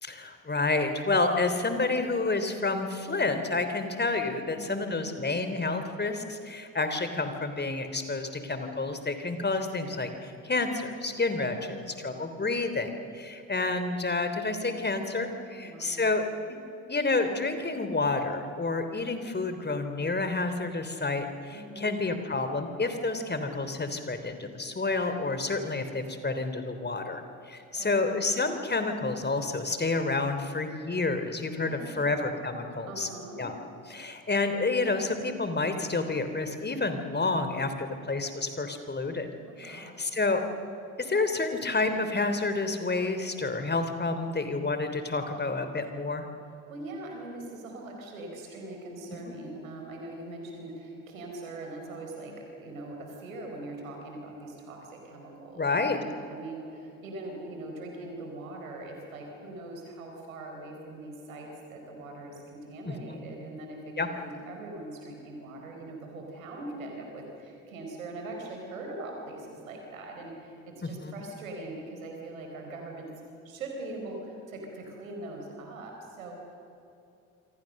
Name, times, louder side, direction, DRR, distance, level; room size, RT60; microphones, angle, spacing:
voice 1, 0.0-16.6 16.9-33.1 33.4-33.5 33.9-39.3 39.6-40.4 41.0-46.3 49.3-49.4 55.6-56.0 62.9-63.2 64.0-64.1 70.8-71.1, left 3 dB, 25° left, 8 dB, 3.4 m, -29 dB
voice 2, 4.5-5.3 11.6-12.2 15.5-16.0 21.5-22.0 27.8-27.9 31.6-32.2 32.8-33.4 39.5-40.1 46.7-55.7 56.0-73.1 73.4-76.6, right 2 dB, 85° right, 2 dB, 4.9 m, -42 dB
27.5 x 24.5 x 6.6 m, 2.8 s
hypercardioid pair, 50°, 40 cm